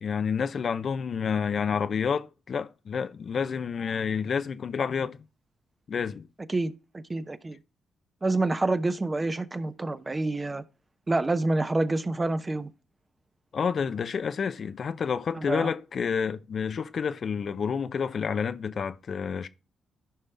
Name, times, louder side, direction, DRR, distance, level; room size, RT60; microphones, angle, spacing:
voice 1, 0.0-5.2 5.9-6.3 13.5-19.5, left 6 dB, 55° left, 0.7 m, -29 dB
voice 2, 6.5-7.6 8.2-10.6 11.1-12.7 15.4-15.7, right 2 dB, 25° right, 1.0 m, -27 dB
13.5 x 5.4 x 3.4 m
cardioid pair, 70°, 0 cm